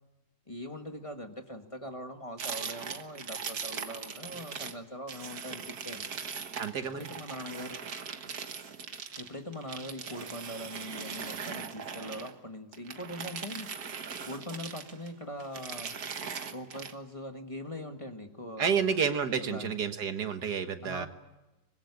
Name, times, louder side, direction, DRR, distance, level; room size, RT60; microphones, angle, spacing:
voice 1, 0.5-6.1 6.9-7.8 9.2-13.7 14.3-16.0 16.5-19.0 19.4-19.7 20.8-21.1, left 1 dB, 20° left, 5 dB, 1.7 m, -41 dB
sound 1, 2.4-4.8 5.1-12.4 12.7-15.1 15.4-16.9, right 6 dB, 70° right, 1.9 m, -40 dB
voice 2, 6.6-7.1 18.6-21.1, right 6 dB, 85° right, 8 dB, 2.1 m, -30 dB
24.0 x 21.0 x 9.7 m, 1.0 s
omnidirectional pair, 1.7 m